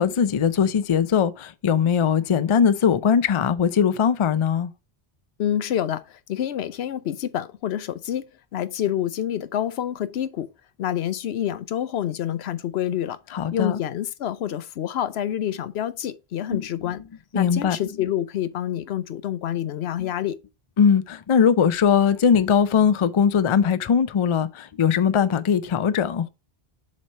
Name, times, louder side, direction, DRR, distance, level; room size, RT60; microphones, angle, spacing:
voice 1, 0.0-4.7 13.3-13.8 16.5-16.6 17.3-17.8 20.0-20.1 20.8-26.3, left 7 dB, 45° left, 0.4 m, -20 dB
voice 2, 5.4-8.3 8.5-10.5 10.8-13.2 13.5-17.0 17.3-20.4, left 11 dB, 80° left, 0.9 m, -27 dB
7.3 x 3.2 x 5.3 m
omnidirectional pair, 1.1 m